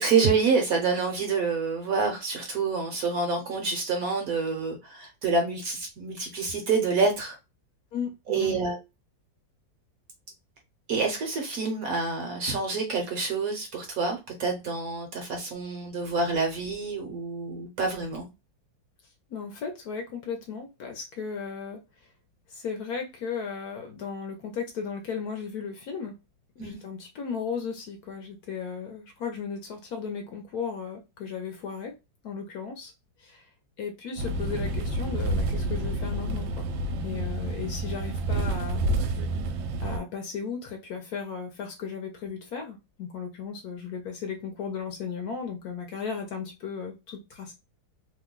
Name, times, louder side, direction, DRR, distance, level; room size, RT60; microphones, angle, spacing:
voice 1, 0.0-7.4 8.3-8.8 10.9-18.3 26.6-26.8 37.1-37.3, right 4 dB, 60° right, 1.0 m, -27 dB
voice 2, 7.9-8.6 19.3-21.8 22.5-26.2 26.6-31.9 32.2-32.9 33.2-33.5 33.8-36.7 37.0-39.2 39.8-47.5, left 6 dB, 65° left, 1.0 m, -35 dB
sound 1, 34.2-40.0, right 1 dB, 80° right, 1.3 m, -29 dB
3.0 x 2.2 x 3.6 m
omnidirectional pair, 2.0 m